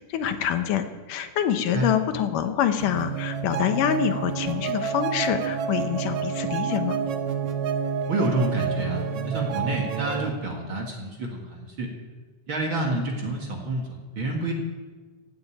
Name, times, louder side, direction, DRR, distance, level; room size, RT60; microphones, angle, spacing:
voice 1, 0.1-7.0, left 9 dB, 80° left, 8 dB, 2.5 m, -26 dB
sound 1, 2.8-10.3, right 6 dB, 70° right, 2.1 m, -29 dB
voice 2, 8.1-11.9 12.5-14.5, right 2 dB, 45° right, 0 dB, 2.2 m, -28 dB
16.0 x 7.9 x 9.1 m, 1.3 s
omnidirectional pair, 3.8 m